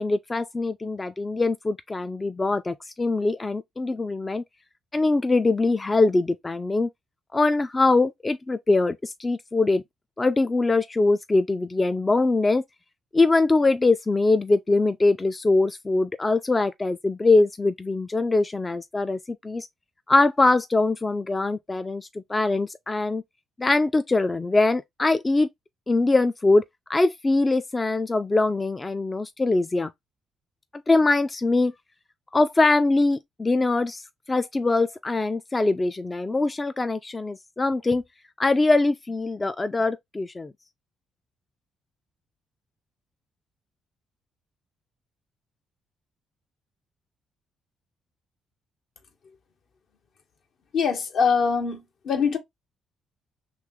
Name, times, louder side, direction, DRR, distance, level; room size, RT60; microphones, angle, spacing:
voice 1, 0.0-4.4 4.9-6.9 7.3-9.8 10.2-12.6 13.1-19.7 20.1-23.2 23.6-25.5 25.9-26.6 26.9-29.9 30.9-31.7 32.3-34.0 34.3-38.0 38.4-40.5, left 3 dB, 20° left, 0.3 m, -22 dB
voice 2, 50.7-52.4, left 6 dB, 65° left, 0.9 m, -23 dB
3.1 x 2.9 x 3.6 m
cardioid pair, 90°, 0 cm